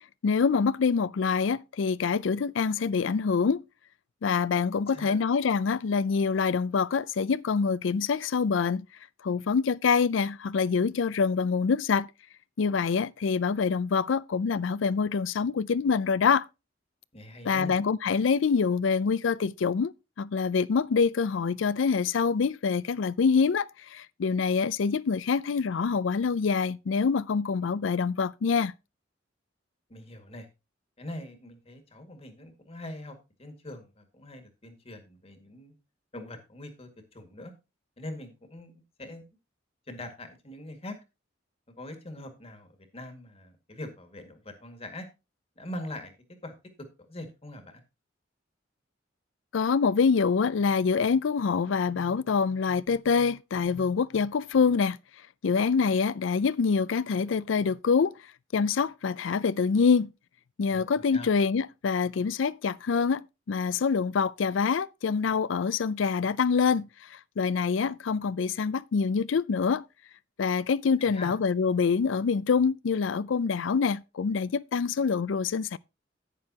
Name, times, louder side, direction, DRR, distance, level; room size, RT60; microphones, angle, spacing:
voice 1, 0.2-3.6 4.2-8.9 9.2-12.1 12.6-16.5 17.4-19.9 20.2-28.7 49.5-55.0 55.4-58.1 58.5-60.1 60.6-69.8 70.4-75.8, left 5 dB, 75° left, 0.4 m, -25 dB
voice 2, 17.1-17.8 29.9-30.5 31.0-35.8 36.1-37.5 38.0-39.2 39.9-41.0 41.8-45.1 45.6-46.1 46.4-47.8 60.7-61.3 71.0-71.3, left 1 dB, 35° left, 2.0 m, -42 dB
11.0 x 9.6 x 2.8 m
head